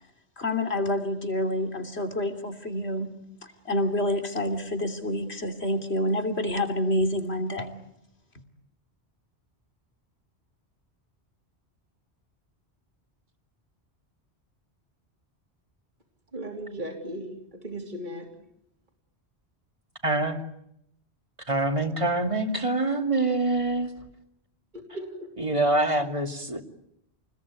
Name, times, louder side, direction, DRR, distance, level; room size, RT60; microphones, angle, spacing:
voice 1, 0.4-3.1 3.4-7.8, left 1 dB, 75° left, 6 dB, 3.4 m, -28 dB
voice 2, 16.3-18.3 24.9-25.3, right 1 dB, 45° right, 1 dB, 3.5 m, -36 dB
voice 3, 20.0-20.4 21.5-23.9 25.4-26.6, right 2 dB, 30° right, 5 dB, 2.6 m, -25 dB
29.5 x 21.0 x 9.6 m, 0.78 s
omnidirectional pair, 1.1 m